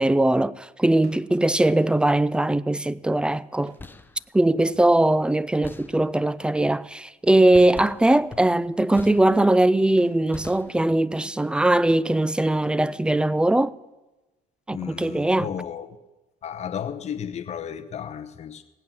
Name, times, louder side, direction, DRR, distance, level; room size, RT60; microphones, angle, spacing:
voice 1, 0.0-3.7 4.3-13.7 14.7-15.5, right 1 dB, 5° right, 0.4 m, -20 dB
sound 1, 1.0-1.5 3.7-4.1 6.4-6.8 7.3-7.7 8.1-8.5 10.0-10.5 12.4-12.8 15.0-15.5, right 5 dB, 70° right, 2.7 m, -54 dB
sound 2, 3.6-4.3 5.6-6.4 7.5-9.7 10.3-11.1, left 2 dB, 10° left, 0.7 m, -43 dB
voice 2, 14.7-16.0 16.4-18.6, left 8 dB, 40° left, 0.9 m, -33 dB
17.0 x 8.5 x 7.2 m
cardioid pair, 110°, 17 cm